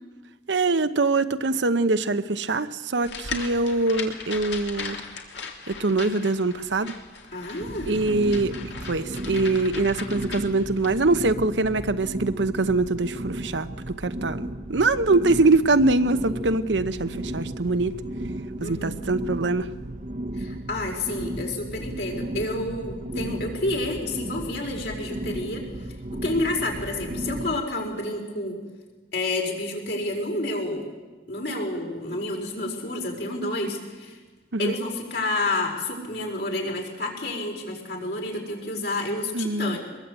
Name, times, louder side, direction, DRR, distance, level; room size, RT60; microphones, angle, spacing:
voice 1, 0.5-5.0 5.7-7.0 7.9-14.4 14.7-18.0 18.6-19.7 34.5-34.7 39.3-39.8, right 3 dB, 90° right, 11 dB, 0.9 m, -23 dB
sound 1, 3.0-10.9, left 5 dB, 85° left, 2.6 m, -38 dB
voice 2, 7.3-8.1 18.6-19.0 20.3-28.6 29.1-30.9 31.3-34.2 34.6-39.8, left 2 dB, 70° left, 0 dB, 4.9 m, -29 dB
sound 2, 7.6-27.6, right 1 dB, 45° right, 0.9 m, -34 dB
23.0 x 21.5 x 8.2 m, 1.3 s
head